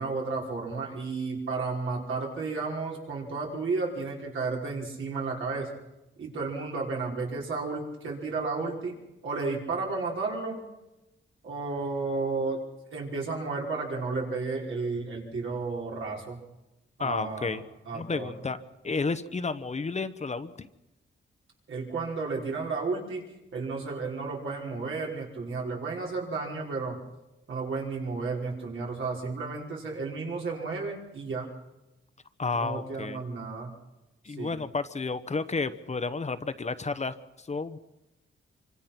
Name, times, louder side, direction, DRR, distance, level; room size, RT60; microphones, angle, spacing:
voice 1, 0.0-5.7 6.2-9.0 9.2-10.6 11.4-12.6 12.9-16.4 17.0-17.6 17.9-18.3 21.7-23.2 23.5-27.0 27.5-31.5 32.6-33.7 34.3-34.6, right 4 dB, 75° right, -2 dB, 5.4 m, -32 dB
voice 2, 17.0-17.6 17.9-18.6 18.8-20.7 32.4-33.2 34.2-37.8, left 4 dB, 35° left, 11 dB, 1.0 m, -31 dB
26.0 x 25.0 x 5.9 m, 0.98 s
cardioid pair, 100°, 21 cm